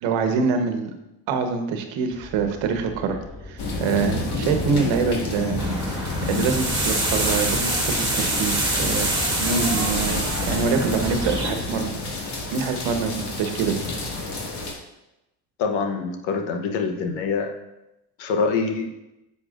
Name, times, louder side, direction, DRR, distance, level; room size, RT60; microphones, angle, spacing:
voice 1, 0.0-0.9 1.3-3.2 3.5-5.6 6.3-9.1 9.4-11.9 12.5-13.1 13.4-13.8, right 5 dB, 80° right, 6 dB, 1.2 m, -25 dB
sound 1, 2.1-11.7, left 1 dB, 15° left, 1.6 m, -42 dB
sound 2, 3.6-14.7, left 3 dB, 60° left, 2.1 m, -29 dB
sound 3, 5.6-11.5, right 2 dB, 10° right, 2.2 m, -26 dB
voice 2, 15.6-17.5 18.2-18.9, left 5 dB, 80° left, 5 dB, 1.1 m, -25 dB
9.8 x 6.9 x 2.5 m, 0.93 s
supercardioid pair, 70°, 45 cm